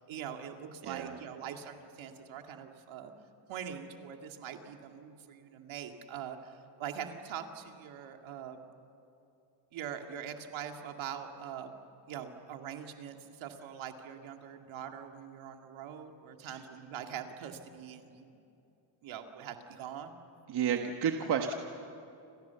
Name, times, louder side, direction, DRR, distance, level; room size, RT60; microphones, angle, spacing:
voice 1, 0.0-3.1 3.5-8.6 9.7-11.7 12.1-18.4 19.0-20.1, right 8 dB, 70° right, 4 dB, 2.4 m, -43 dB
voice 2, 0.8-1.2 20.5-21.5, right 7 dB, 50° right, 4 dB, 1.5 m, -31 dB
29.5 x 27.0 x 7.1 m, 2.7 s
cardioid pair, 165°, 50 cm